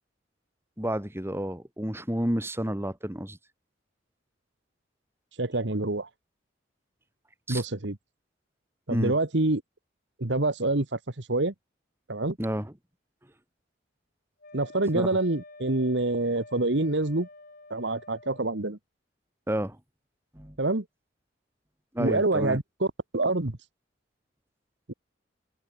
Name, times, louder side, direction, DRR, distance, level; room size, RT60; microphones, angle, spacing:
voice 1, 0.8-3.4 7.5-7.6 8.9-9.1 12.4-12.7 14.9-15.1 19.5-19.8 20.3-20.6 21.9-22.6, equal, 15° right, 3.2 m, -30 dB
voice 2, 5.4-6.1 7.5-8.0 8.9-9.6 10.2-11.5 12.1-12.4 14.5-17.3 17.7-18.8 20.6-20.9 22.0-22.9 23.1-23.6 24.9-25.0, right 2 dB, 70° right, 1.7 m, -26 dB
Wind instrument woodwind instrument, 14.4-18.7, left 2 dB, 50° left, 6.4 m, -49 dB
head